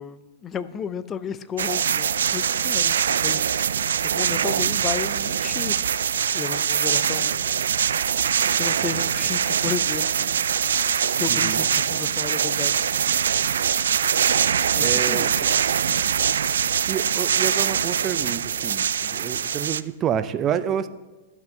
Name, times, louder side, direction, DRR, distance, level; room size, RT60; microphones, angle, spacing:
voice 1, 0.0-3.7 4.0-5.8 6.3-7.5 8.6-10.4 11.2-12.8 14.7-16.2, left 7 dB, 20° left, 15 dB, 0.6 m, -33 dB
sound 1, 1.6-19.8, right 8 dB, 85° right, 0.4 m, -23 dB
voice 2, 11.3-11.7 14.8-15.3 16.9-20.9, right 9 dB, 30° right, 12 dB, 0.6 m, -28 dB
13.0 x 6.0 x 6.6 m, 1.2 s
hypercardioid pair, 130°, 0 cm